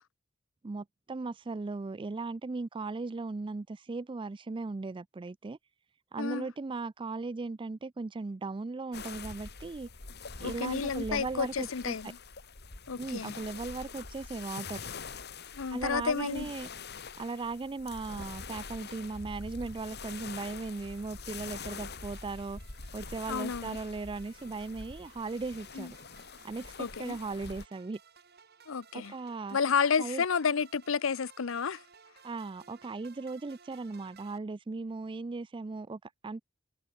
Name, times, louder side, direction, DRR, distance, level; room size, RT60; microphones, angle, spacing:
voice 1, 0.6-5.6 6.1-9.9 10.4-12.1 13.0-14.9 15.7-16.7 17.2-22.6 22.9-26.0 26.4-28.0 28.9-29.6 30.0-30.2 32.2-36.4, right 3 dB, 25° right, 0.4 m, -37 dB
sound 1, 8.9-27.7, left 4 dB, 55° left, 2.7 m, -45 dB
voice 2, 10.4-12.2 12.9-13.3 15.5-16.5 23.3-23.8 25.7-25.9 26.8-27.2 28.7-29.1 29.5-31.8, left 6 dB, 75° left, 0.7 m, -31 dB
sound 2, 20.2-34.4, right 6 dB, 55° right, 7.9 m, -59 dB
head